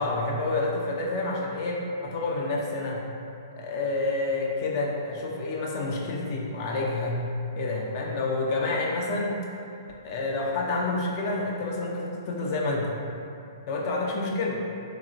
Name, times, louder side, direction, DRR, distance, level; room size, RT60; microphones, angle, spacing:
voice 1, 0.0-3.1 3.5-7.2 7.6-9.4 10.0-12.9 13.7-14.6, left 2 dB, 45° left, -2 dB, 0.4 m, -28 dB
2.9 x 2.9 x 2.5 m, 2.6 s
hypercardioid pair, 125°, 2 cm